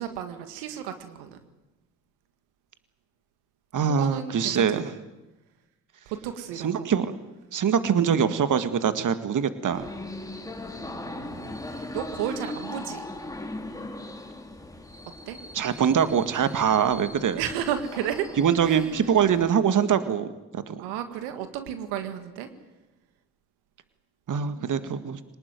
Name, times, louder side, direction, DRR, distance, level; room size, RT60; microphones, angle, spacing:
voice 1, 0.0-1.4 3.9-5.0 6.1-6.9 10.8-13.0 15.3-15.4 17.4-18.3 18.6-18.8 20.8-22.5 24.5-25.0, right 10 dB, 85° right, 9 dB, 2.0 m, -33 dB
voice 2, 3.7-4.9 6.6-7.1 7.5-9.8 15.5-17.4 18.4-20.3 20.5-20.8 24.3-25.2, right 7 dB, 50° right, 11 dB, 1.9 m, -23 dB
sound 1, 9.7-19.5, left 2 dB, 10° left, 3.6 m, -39 dB
24.0 x 19.5 x 9.5 m, 1.0 s
hypercardioid pair, 55°, 39 cm